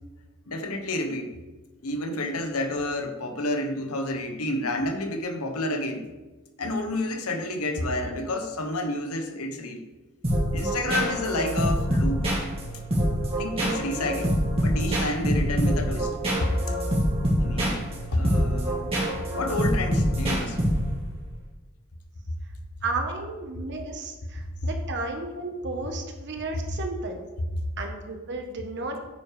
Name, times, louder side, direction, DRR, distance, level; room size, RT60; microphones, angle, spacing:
voice 1, 0.5-1.4 1.8-6.1 6.6-9.8 10.5-12.5 13.4-16.1 16.4-16.5 17.4-17.8 18.1-19.0 19.3-20.6 24.6-24.7 26.5-26.6, left 1 dB, 85° left, 6 dB, 1.1 m, -29 dB
sound 1, 10.2-21.1, equal, 25° right, 2.5 m, -26 dB
voice 2, 22.8-27.2 27.8-29.1, right 3 dB, 55° right, 3 dB, 1.3 m, -33 dB
9.4 x 4.7 x 5.0 m, 1.2 s
head